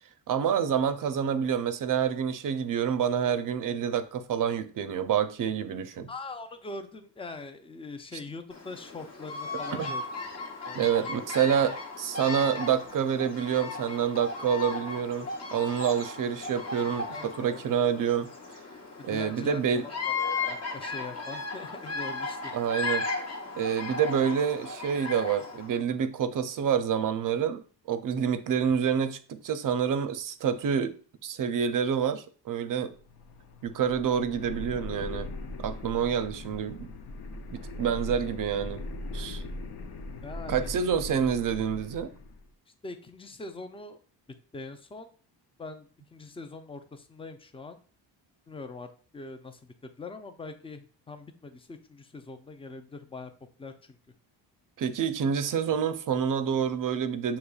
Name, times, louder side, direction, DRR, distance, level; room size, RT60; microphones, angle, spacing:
voice 1, 0.3-6.1 9.8-9.9 10.7-18.3 19.0-19.8 22.5-23.1 23.6-27.6 27.9-31.0 31.2-32.9 33.6-35.3 35.6-36.9 37.5-38.8 39.1-39.4 40.5-42.1 54.8-57.4, right 8 dB, 50° right, 0.5 m, -28 dB
voice 2, 6.1-10.0 10.7-11.2 17.1-17.6 19.0-22.5 40.2-40.7 42.8-44.0 44.5-45.1 45.6-47.8 48.5-53.3 53.6-54.0, left 3 dB, 15° left, 0.5 m, -42 dB
Bird vocalization bird call bird song, 8.5-25.8, left 4 dB, 35° left, 1.0 m, -36 dB
sound 1, 32.9-42.4, left 2 dB, 60° left, 0.7 m, -40 dB
6.5 x 3.0 x 2.3 m
cardioid pair, 85°, 43 cm